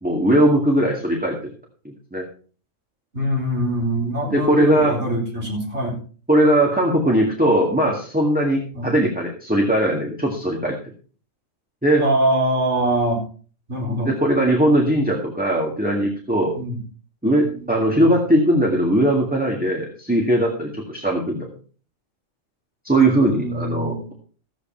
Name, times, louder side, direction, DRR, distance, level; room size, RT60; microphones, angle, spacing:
voice 1, 0.0-1.5 1.8-2.2 4.3-5.0 6.3-10.8 11.8-12.1 14.0-16.6 17.2-21.5 22.8-24.1, right 1 dB, 5° right, -2 dB, 2.0 m, -19 dB
voice 2, 3.1-6.0 8.7-8.9 12.0-13.2 13.7-14.1 16.6-16.8 17.5-18.1 23.0-24.1, right 1 dB, 55° right, -2 dB, 4.5 m, -24 dB
14.0 x 8.3 x 4.5 m, 0.39 s
omnidirectional pair, 1.4 m